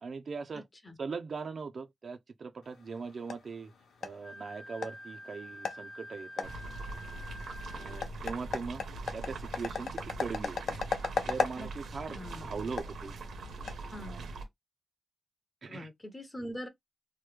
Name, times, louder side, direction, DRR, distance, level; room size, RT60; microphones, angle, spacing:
voice 1, 0.0-0.6 1.0-3.7 4.0-6.5 7.7-8.8 9.1-10.7 11.3-13.1 13.9-14.3 15.6-15.9, right 5 dB, 45° right, 0.4 m, -40 dB
voice 2, 0.5-1.0 11.6-11.7 12.1-12.6 13.9-14.2 15.7-16.7, equal, 15° left, 0.6 m, -43 dB
sound 1, 2.6-14.5, left 5 dB, 70° left, 0.6 m, -39 dB
Wind instrument woodwind instrument, 4.2-8.1, equal, 40° left, 0.9 m, -48 dB
sound 2, 6.4-14.4, right 3 dB, 80° right, 0.9 m, -42 dB
3.0 x 2.1 x 3.2 m
wide cardioid pair, 160°, 0 cm